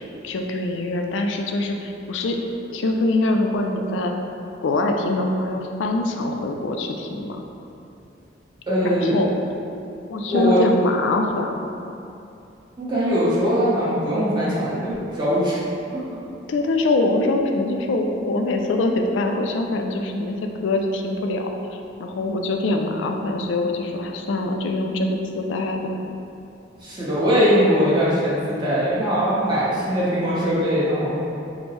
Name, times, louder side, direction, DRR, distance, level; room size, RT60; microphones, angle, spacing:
voice 1, 0.0-2.4 2.7-4.1 4.6-7.4 8.8-9.3 10.1-11.5 16.5-20.4 20.6-21.4 22.0-25.1 25.4-25.8, left 2 dB, 90° left, 3 dB, 0.4 m, -23 dB
voice 2, 8.7-9.1 10.3-10.6 12.8-15.6 15.9-16.0 26.8-31.2, equal, 25° right, -9 dB, 1.0 m, -21 dB
5.1 x 2.1 x 3.0 m, 2.7 s
head